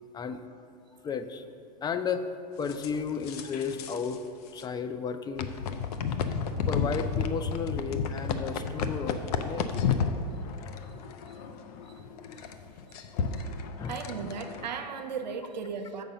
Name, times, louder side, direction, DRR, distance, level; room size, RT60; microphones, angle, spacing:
voice 1, 1.0-1.4 1.8-2.3 2.6-4.2 4.5-5.5 6.7-9.8 13.8-14.0, left 6 dB, 20° left, 9 dB, 0.4 m, -33 dB
sound 1, 2.7-4.2 4.5-4.6 5.4-14.7, left 5 dB, 65° left, 0.7 m, -32 dB
voice 2, 13.9-16.0, right 5 dB, 90° right, 6 dB, 0.7 m, -36 dB
7.5 x 5.2 x 5.6 m, 2.6 s
hypercardioid pair, 105°, 21 cm